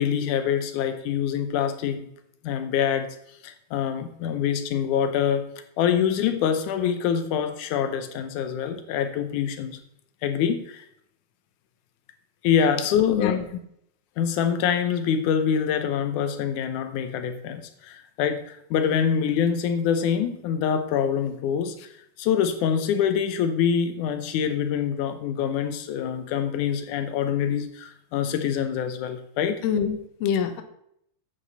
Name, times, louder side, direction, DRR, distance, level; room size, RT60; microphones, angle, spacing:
voice 1, 0.0-2.1 2.4-3.2 3.4-5.5 5.8-9.8 10.2-10.8 12.4-13.5 14.2-21.8 22.2-29.6, left 8 dB, 85° left, 8 dB, 2.3 m, -25 dB
voice 2, 13.1-13.4 29.6-30.6, left 8 dB, 70° left, 7 dB, 2.0 m, -25 dB
9.2 x 8.0 x 4.0 m, 0.72 s
omnidirectional pair, 3.4 m